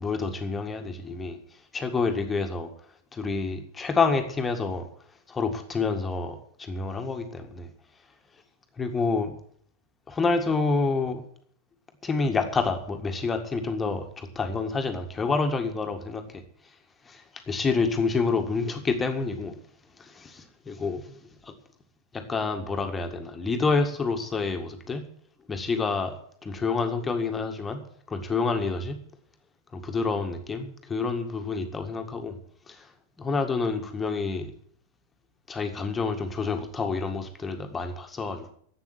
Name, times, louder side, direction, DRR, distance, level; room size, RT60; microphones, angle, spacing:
voice 1, 0.0-1.4 1.7-2.7 3.1-4.9 5.3-7.7 8.8-9.3 10.1-11.2 12.0-16.4 17.1-19.6 20.0-21.5 22.1-25.0 25.5-26.2 26.4-27.8 28.1-29.0 29.7-32.4 32.7-32.9 33.2-34.5 35.5-38.5, left 4 dB, 15° left, 5 dB, 1.8 m, -28 dB
11.5 x 8.4 x 9.5 m, 0.62 s
figure-of-eight pair, 90°, 0 cm